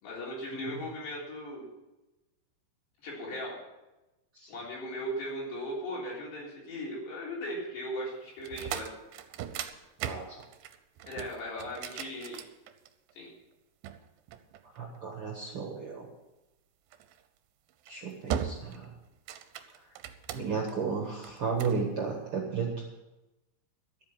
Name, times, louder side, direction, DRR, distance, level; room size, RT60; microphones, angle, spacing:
voice 1, 0.0-1.7 3.0-3.6 4.5-8.9 11.1-12.4 13.1-13.3, equal, 90° left, -4 dB, 5.9 m, -38 dB
sound 1, 8.4-13.1 13.8-15.2 16.9-17.2 17.7-18.0 18.3-18.9 19.1-20.7 21.2-21.8, right 9 dB, 75° right, 2.2 m, -38 dB
voice 2, 14.8-16.1 17.9-18.9 20.3-22.7, right 5 dB, 60° right, 1 dB, 1.4 m, -33 dB
12.5 x 8.7 x 7.2 m, 1.0 s
omnidirectional pair, 4.8 m